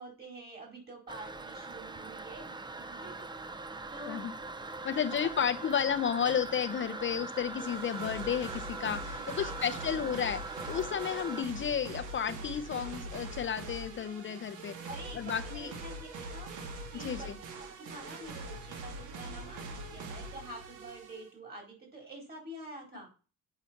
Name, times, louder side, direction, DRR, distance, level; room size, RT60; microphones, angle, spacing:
voice 1, 0.0-3.2 3.9-4.2 4.9-5.2 9.2-10.1 14.9-16.5 16.9-17.3 17.6-23.1, right 1 dB, 35° right, 2 dB, 4.5 m, -47 dB
Toilet flush, 1.1-11.4, right 3 dB, 15° right, 0.5 m, -41 dB
voice 2, 4.8-14.7 15.1-15.7 17.0-17.4, left 8 dB, 40° left, 9 dB, 0.6 m, -32 dB
sound 1, 7.6-21.3, right 2 dB, 90° right, 1.7 m, -43 dB
8.2 x 5.7 x 5.8 m, 0.36 s
cardioid pair, 120°, 30 cm